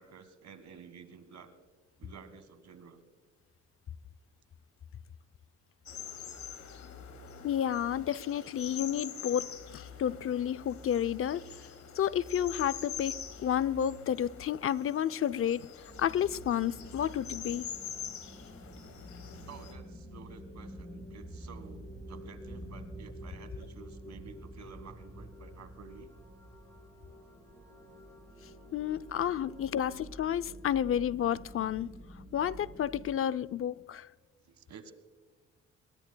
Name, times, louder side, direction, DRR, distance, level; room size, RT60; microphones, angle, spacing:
voice 1, 0.0-1.5 2.0-3.0 19.5-26.1 34.5-34.9, right 6 dB, 65° right, 1.7 m, -51 dB
sound 1, 5.9-19.7, left 7 dB, 65° left, 2.6 m, -45 dB
voice 2, 7.4-11.4 12.0-15.7 16.0-17.7 28.7-31.9 32.3-34.1, left 10 dB, 45° left, 0.5 m, -31 dB
sound 2, 15.9-33.1, equal, 10° left, 5.2 m, -48 dB
23.5 x 19.5 x 2.3 m
cardioid pair, 90°, 30 cm